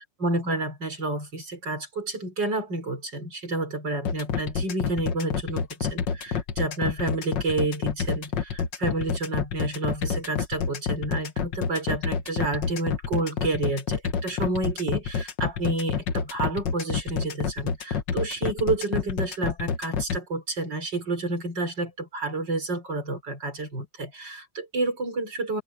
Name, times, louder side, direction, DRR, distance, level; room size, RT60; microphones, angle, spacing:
voice 1, 0.0-25.6, right 2 dB, 65° right, 5.5 m, -30 dB
sound 1, 4.1-20.2, left 6 dB, 70° left, 2.0 m, -28 dB
open air
omnidirectional pair, 2.1 m